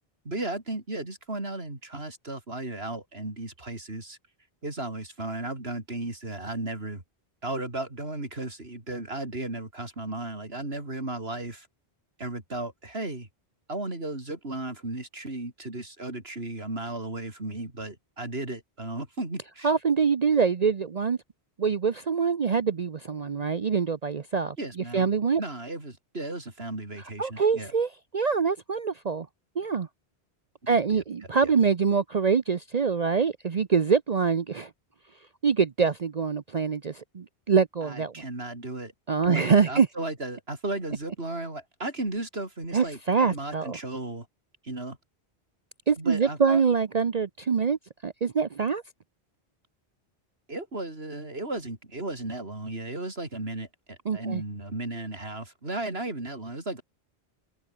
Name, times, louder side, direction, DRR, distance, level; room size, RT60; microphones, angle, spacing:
voice 1, 0.2-4.2 4.6-7.0 7.4-11.7 12.2-13.3 13.7-19.7 24.6-25.1 25.4-27.7 30.6-31.0 31.4-31.5 37.8-38.9 39.3-44.3 44.6-45.0 46.0-46.6 50.5-56.8, right 2 dB, 70° right, 4.8 m, -35 dB
voice 2, 19.6-21.2 21.6-25.4 27.2-29.3 29.6-29.9 30.7-34.7 35.4-38.1 39.1-39.9 42.7-43.8 45.9-47.8 48.0-48.8 54.1-54.4, right 5 dB, 45° right, 0.8 m, -25 dB
omnidirectional pair, 1.1 m